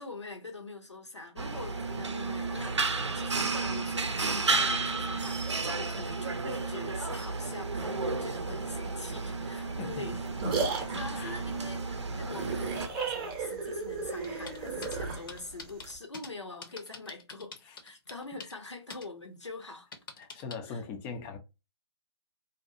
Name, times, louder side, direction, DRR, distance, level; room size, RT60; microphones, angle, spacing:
voice 1, 0.0-2.8 3.1-10.3 10.6-17.5 17.8-19.9 20.7-20.8, left 3 dB, 85° left, 0.8 m, -44 dB
sound 1, 1.4-12.9, right 3 dB, 80° right, 0.5 m, -32 dB
voice 2, 9.5-10.0 11.1-11.4 17.7-17.8 20.2-21.4, left 5 dB, 10° left, 0.3 m, -41 dB
sound 2, 9.9-16.0, right 4 dB, 20° right, 0.7 m, -35 dB
sound 3, 14.2-15.0 15.3-16.3 16.6-18.7 18.9-19.1 19.4-20.6, left 4 dB, 50° left, 0.6 m, -45 dB
2.6 x 2.2 x 2.5 m
figure-of-eight pair, 135°, 15 cm